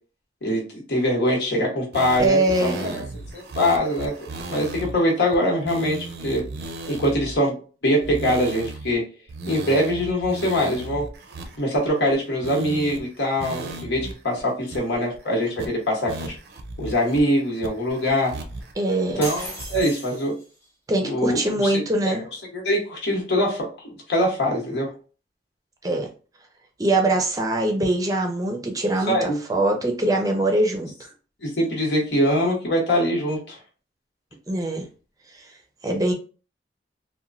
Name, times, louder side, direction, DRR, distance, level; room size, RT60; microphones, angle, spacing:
voice 1, 0.4-3.0 3.3-4.1 4.5-6.4 6.9-7.6 7.8-9.0 9.5-11.1 11.6-16.4 16.8-18.4 19.2-20.3 21.0-22.1 22.5-24.9 29.1-29.4 31.4-33.6, equal, 80° left, 1.1 m, -23 dB
sound 1, 1.9-4.9 5.3-5.4 5.7-7.4 8.0-8.9 9.3-12.1 12.4-13.0 13.4-14.1 14.4-14.5 14.7-15.2 15.6-15.7 16.1-17.2 17.6-18.7 19.1-19.9, right 2 dB, 70° right, 0.5 m, -36 dB
voice 2, 2.2-3.0 18.8-19.3 20.9-22.2 25.8-26.1 26.8-31.1 34.5-34.8 35.3-35.5 35.8-36.1, right 2 dB, 20° right, 0.5 m, -23 dB
sound 2, 19.2-20.7, equal, 15° left, 0.9 m, -36 dB
3.0 x 2.2 x 2.5 m
head